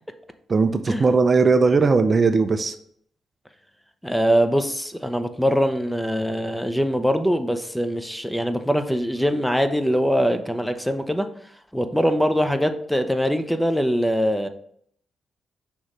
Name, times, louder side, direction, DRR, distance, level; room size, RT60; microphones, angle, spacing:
voice 1, 0.5-2.8, right 4 dB, 40° right, 9 dB, 0.5 m, -18 dB
voice 2, 4.0-11.3 11.7-14.5, equal, 5° left, 8 dB, 0.6 m, -22 dB
6.3 x 3.0 x 4.9 m, 0.67 s
cardioid pair, 75°, 0 cm